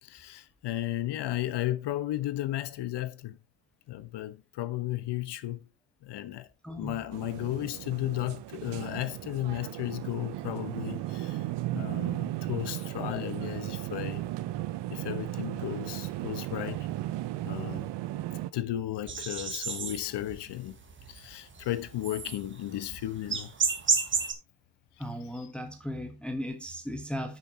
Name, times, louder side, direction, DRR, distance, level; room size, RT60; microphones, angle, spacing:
voice 1, 0.0-3.4 3.9-5.6 6.0-6.5 6.8-11.5 11.7-14.3 14.9-16.9 17.4-17.9 18.5-20.8 21.1-23.5 25.3-25.5, left 14 dB, 60° left, 1.2 m, -34 dB
voice 2, 6.6-7.0 25.0-27.4, equal, ahead, 1.3 m, -36 dB
sound 1, 7.1-18.5, right 15 dB, 65° right, 0.8 m, -35 dB
sound 2, 19.1-24.3, right 5 dB, 25° right, 1.8 m, -31 dB
10.5 x 8.4 x 2.9 m
cardioid pair, 140°, 46 cm